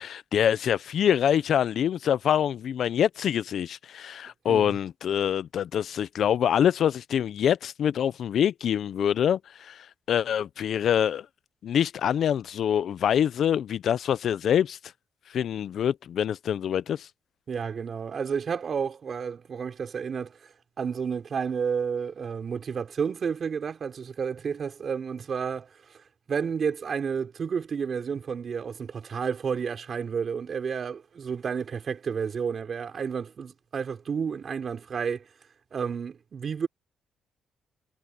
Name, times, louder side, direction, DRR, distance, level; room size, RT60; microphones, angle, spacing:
voice 1, 0.0-11.3 11.6-14.8 15.3-17.1, left 9 dB, 65° left, 0.7 m, -25 dB
voice 2, 4.5-4.8 17.5-26.0 26.3-35.3 35.7-36.7, right 6 dB, 45° right, 4.8 m, -31 dB
cardioid pair, 90°, 0 cm